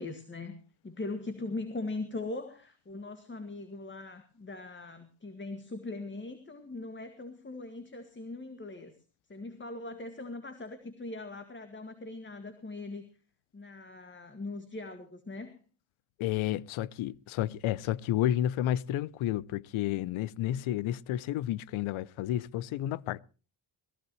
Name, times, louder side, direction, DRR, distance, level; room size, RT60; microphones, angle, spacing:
voice 1, 0.0-9.0 9.3-13.1 13.5-15.6, left 2 dB, 25° left, 1.9 m, -40 dB
voice 2, 16.2-23.2, left 12 dB, 90° left, 0.6 m, -31 dB
20.0 x 15.0 x 3.1 m
cardioid pair, 90°, 47 cm